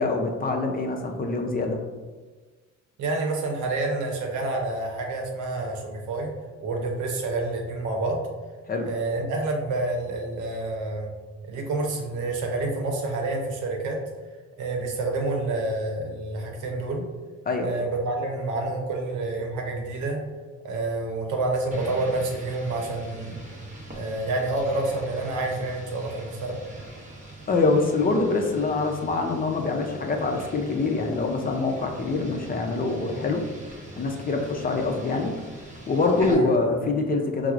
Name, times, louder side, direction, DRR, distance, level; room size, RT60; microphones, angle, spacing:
voice 1, 0.0-1.8 8.7-8.9 17.5-17.7 27.5-33.4 34.0-35.3 35.9-37.5, left 3 dB, 30° left, 2 dB, 0.4 m, -25 dB
voice 2, 3.0-6.3 6.6-8.2 8.8-11.1 11.5-14.0 14.6-17.1 17.6-20.2 20.6-23.4 23.9-26.6 36.3-36.5, right 2 dB, 80° right, 1 dB, 0.7 m, -28 dB
sound 1, 21.7-36.3, right 2 dB, 25° right, 0.7 m, -43 dB
4.4 x 2.0 x 2.4 m, 1.3 s
cardioid pair, 90°, 30 cm